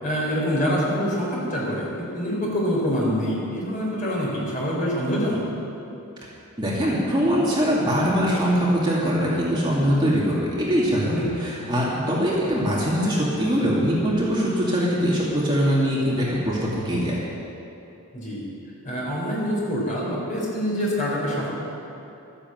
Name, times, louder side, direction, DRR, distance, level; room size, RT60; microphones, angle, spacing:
voice 1, 0.0-5.4 11.1-11.3 18.1-18.5 18.8-21.5, equal, 35° left, -5 dB, 4.2 m, -25 dB
voice 2, 6.6-17.2, equal, 20° right, -6 dB, 2.3 m, -22 dB
13.5 x 10.0 x 7.9 m, 2.9 s
head